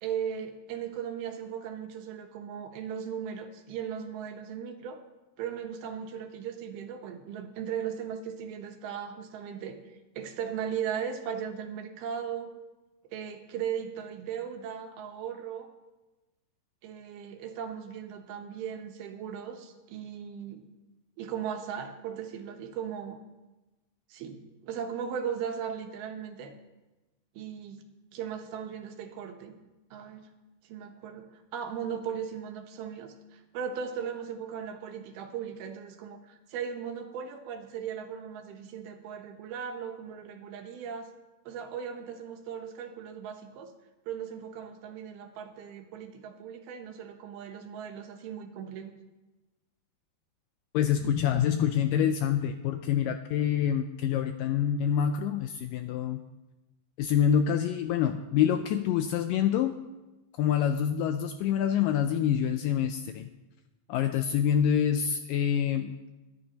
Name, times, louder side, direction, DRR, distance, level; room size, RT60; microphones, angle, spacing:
voice 1, 0.0-5.0 5.4-9.8 10.2-12.5 13.1-15.7 16.8-20.6 21.2-23.2 24.1-26.5 27.4-27.8 28.1-29.6 29.9-30.3 30.7-41.1 41.5-43.7 44.1-48.9, right 8 dB, 80° right, 5 dB, 3.0 m, -37 dB
voice 2, 50.7-56.2 57.0-59.8 60.4-63.3 63.9-66.1, left 9 dB, 85° left, 8 dB, 2.0 m, -26 dB
23.5 x 10.0 x 2.9 m, 1.1 s
omnidirectional pair, 4.4 m